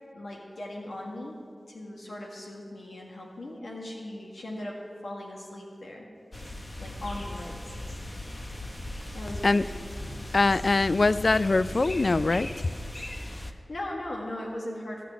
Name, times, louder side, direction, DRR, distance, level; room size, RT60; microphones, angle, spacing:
voice 1, 0.1-6.1 6.8-7.6 9.1-9.9 13.3-15.0, left 1 dB, 85° left, -1 dB, 1.7 m, -38 dB
sound 1, 6.3-13.5, left 1 dB, 30° left, 1.0 m, -38 dB
voice 2, 10.3-12.5, left 3 dB, 60° left, 16 dB, 0.3 m, -23 dB
15.5 x 6.1 x 9.5 m, 2.2 s
wide cardioid pair, 45°, 0 cm